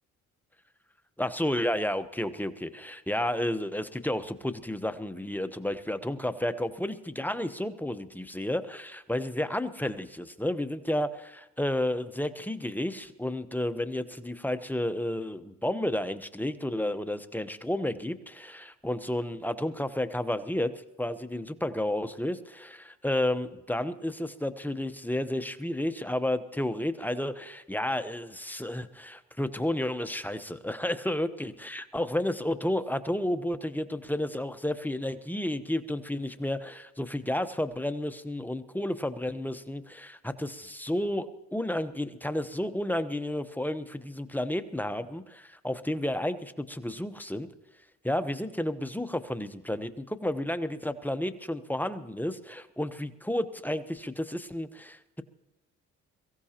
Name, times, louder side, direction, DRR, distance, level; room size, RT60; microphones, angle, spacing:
voice 1, 1.2-20.7 21.0-47.5 48.0-55.2, left 1 dB, 5° left, 10 dB, 0.9 m, -31 dB
22.5 x 15.5 x 2.9 m, 0.95 s
cardioid pair, 90°, 30 cm